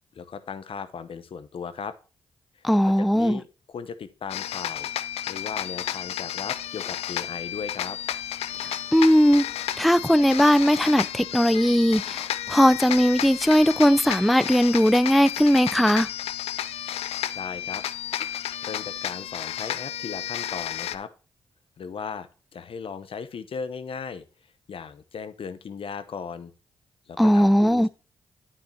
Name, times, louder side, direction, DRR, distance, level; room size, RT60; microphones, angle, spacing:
voice 1, 0.1-2.0 2.8-4.9 5.3-8.0 17.3-17.8 18.6-21.1 21.8-22.3 22.5-24.2 24.7-26.5 27.1-27.9, left 6 dB, 60° left, 0.9 m, -37 dB
voice 2, 2.6-3.4 8.6-9.4 9.8-16.1 27.2-27.9, equal, ahead, 0.4 m, -19 dB
sound 1, 4.3-21.0, left 11 dB, 80° left, 0.4 m, -32 dB
8.9 x 7.5 x 2.8 m
supercardioid pair, 50°, 10 cm